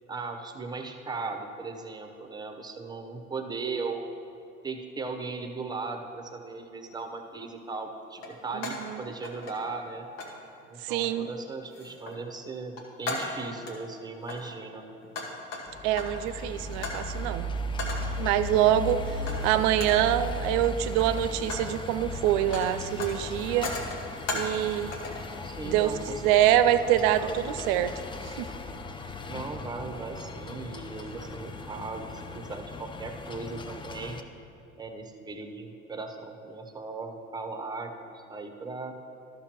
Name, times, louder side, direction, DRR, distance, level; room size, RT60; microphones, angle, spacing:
voice 1, 0.1-4.0 4.6-10.1 10.7-15.0 19.1-19.5 25.4-26.3 26.9-27.4 29.3-34.3 34.8-39.0, right 3 dB, 10° right, 5 dB, 0.7 m, -38 dB
sound 1, 6.9-7.1 8.2-8.9 9.2-9.9 10.2-10.4 11.0-11.3 11.7-12.2 12.6-13.8 14.2-16.3 16.8-17.1 17.8-18.2 19.3-19.5 19.7-20.1 20.8-21.7 22.0-24.7 24.9-25.3, left 2 dB, 70° left, 1.4 m, -37 dB
voice 2, 8.5-8.9 10.8-11.3 15.8-17.5 18.2-23.7 24.3-24.9 25.6-27.9 28.4-28.5, right 11 dB, 55° right, 12 dB, 0.5 m, -25 dB
sound 2, 15.7-34.2, left 1 dB, 15° left, 0.4 m, -37 dB
13.0 x 6.0 x 2.9 m, 2.7 s
figure-of-eight pair, 60°, 40 cm